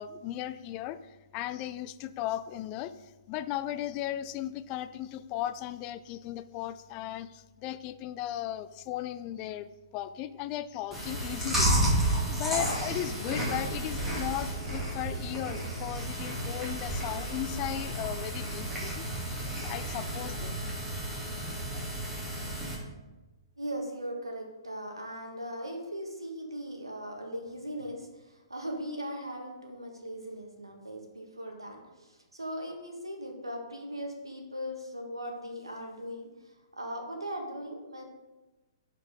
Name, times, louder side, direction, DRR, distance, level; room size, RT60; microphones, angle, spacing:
voice 1, 0.0-19.1 19.7-20.6, left 12 dB, 30° left, 14 dB, 0.4 m, -36 dB
Chewing mastication, 10.9-22.7, right 1 dB, 5° right, 2.3 m, -32 dB
voice 2, 23.6-36.3 36.7-38.0, equal, 90° right, 2 dB, 1.5 m, -39 dB
11.0 x 4.8 x 3.5 m, 1.1 s
figure-of-eight pair, 120°, 2 cm